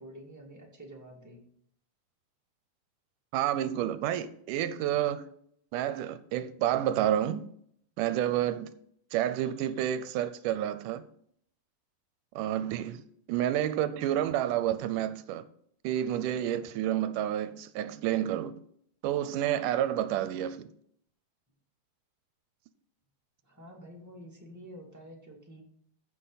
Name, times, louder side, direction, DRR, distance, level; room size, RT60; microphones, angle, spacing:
voice 1, 0.0-1.4 23.4-25.6, equal, 5° right, 1.6 m, -48 dB
voice 2, 3.3-5.3 5.7-7.5 8.0-8.7 9.1-11.0 12.4-15.4 15.8-18.6 19.0-20.7, right 11 dB, 85° right, 2.1 m, -29 dB
14.5 x 6.2 x 4.0 m
omnidirectional pair, 3.7 m